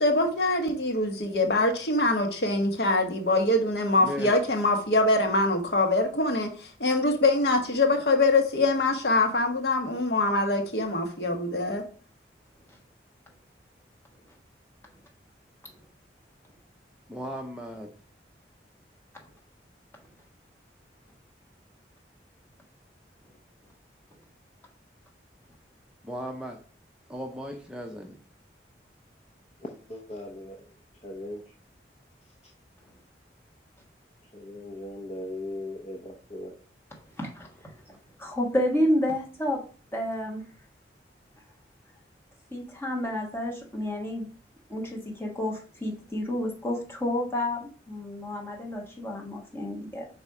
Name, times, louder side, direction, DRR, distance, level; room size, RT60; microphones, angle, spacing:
voice 1, 0.0-11.8, left 2 dB, 65° left, 4 dB, 1.2 m, -24 dB
voice 2, 4.0-4.3 17.1-17.9 26.0-26.6 27.1-28.2, equal, 5° right, 2 dB, 0.6 m, -36 dB
voice 3, 29.6-30.7 31.0-31.4 34.3-36.5, left 1 dB, 35° left, 0 dB, 0.8 m, -38 dB
voice 4, 37.2-39.6 39.9-40.4 42.5-44.3 44.7-50.1, left 1 dB, 15° left, -1 dB, 1.4 m, -30 dB
5.5 x 4.1 x 4.8 m, 0.40 s
head